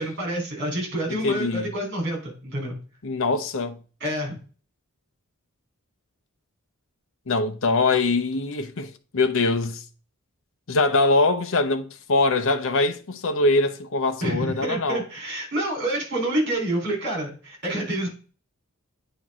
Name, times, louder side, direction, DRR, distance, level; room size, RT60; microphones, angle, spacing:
voice 1, 0.0-2.8 4.0-4.4 14.2-18.1, right 1 dB, 50° right, 3.7 m, -28 dB
voice 2, 1.1-1.7 3.0-3.8 7.3-9.8 10.7-15.0, left 3 dB, 65° left, 0.7 m, -23 dB
8.9 x 4.6 x 3.6 m
head